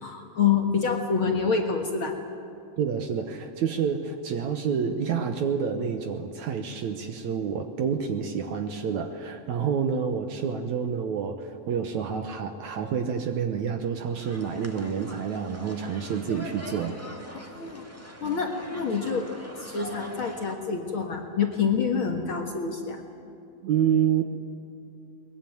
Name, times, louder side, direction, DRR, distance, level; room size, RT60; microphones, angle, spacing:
voice 1, 0.0-2.1 17.3-17.9 18.2-19.3 19.6-23.0, left 6 dB, 55° left, 2 dB, 1.6 m, -27 dB
voice 2, 2.8-17.0 23.6-24.2, right 7 dB, 70° right, 7 dB, 1.9 m, -28 dB
sound 1, 14.1-20.5, equal, 10° right, 0.7 m, -43 dB
22.0 x 21.5 x 9.4 m, 2.6 s
omnidirectional pair, 4.4 m